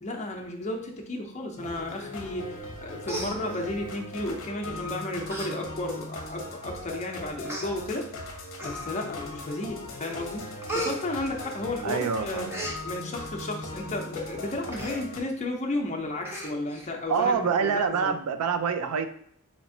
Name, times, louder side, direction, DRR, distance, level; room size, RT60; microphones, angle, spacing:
voice 1, 0.0-8.1 8.6-10.5 10.7-12.5 12.8-17.4 17.6-18.1, left 2 dB, 30° left, 2 dB, 0.6 m, -33 dB
sound 1, 1.6-15.2, left 2 dB, 60° left, 0.7 m, -39 dB
Human voice, 2.6-2.8 3.0-3.9 4.7-4.9 5.3-5.5 5.9-6.0 6.8-6.9 7.4-7.7 8.6-9.1 9.6-10.0 10.2-11.9 12.2-12.8 14.7-15.0 15.4-15.5 15.7-15.9 16.2-16.9 17.3-17.4, right 1 dB, 10° right, 0.5 m, -36 dB
voice 2, 11.8-12.7 17.1-19.1, right 6 dB, 75° right, 9 dB, 0.4 m, -26 dB
4.2 x 2.9 x 2.7 m, 0.66 s
head